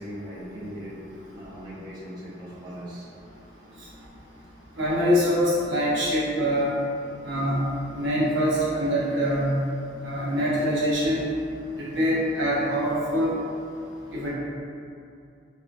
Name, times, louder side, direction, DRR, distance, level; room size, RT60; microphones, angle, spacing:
voice 1, 0.0-3.1, equal, 25° right, -10 dB, 0.5 m, -39 dB
voice 2, 4.8-6.7 7.2-7.7 7.9-9.5 10.0-11.2 11.8-13.3 14.1-14.3, equal, 85° right, -7 dB, 0.8 m, -24 dB
3.8 x 2.3 x 2.5 m, 2.5 s
head